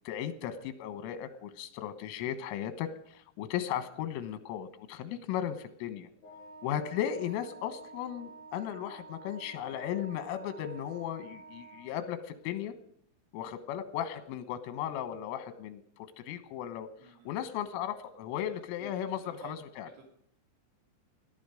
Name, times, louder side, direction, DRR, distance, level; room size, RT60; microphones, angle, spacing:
voice 1, 0.1-6.1 6.6-12.7 13.3-15.8 16.2-16.9 17.3-19.9, left 10 dB, 85° left, 10 dB, 3.8 m, -36 dB
Wind instrument woodwind instrument, 6.2-11.9, right 4 dB, 70° left, 8.3 m, -50 dB
voice 2, 17.0-17.4 18.8-18.9 19.2-19.6 20.0-20.1, right 4 dB, 80° right, 1 dB, 5.6 m, -51 dB
20.0 x 11.0 x 5.1 m, 0.68 s
omnidirectional pair, 5.8 m